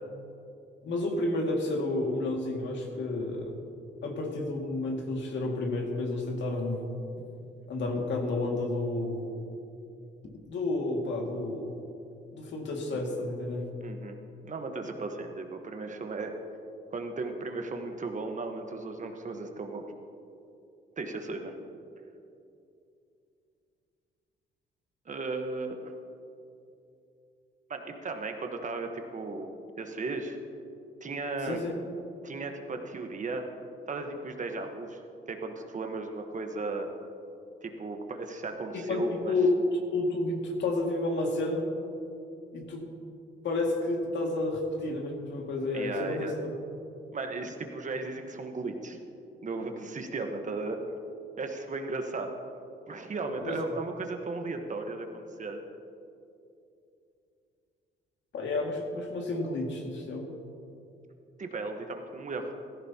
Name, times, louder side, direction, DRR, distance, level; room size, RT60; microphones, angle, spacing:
voice 1, 0.8-3.5 4.0-6.9 7.7-9.3 10.5-11.7 12.3-13.6 31.4-31.8 38.9-39.5 39.9-41.7 42.5-42.9 43.4-46.5 53.4-53.6 58.3-60.3, left 2 dB, 65° left, 0 dB, 2.1 m, -31 dB
voice 2, 13.8-14.2 14.4-16.3 16.9-19.8 21.0-21.5 25.1-25.9 27.7-29.5 29.8-30.4 31.0-31.6 32.2-33.5 33.9-35.0 35.3-36.9 37.6-39.3 45.7-46.3 47.1-49.0 49.4-50.8 51.4-52.3 52.9-55.6 61.4-62.5, right 3 dB, 40° right, 5 dB, 1.2 m, -36 dB
16.0 x 14.0 x 2.9 m, 2.7 s
cardioid pair, 90°, 20 cm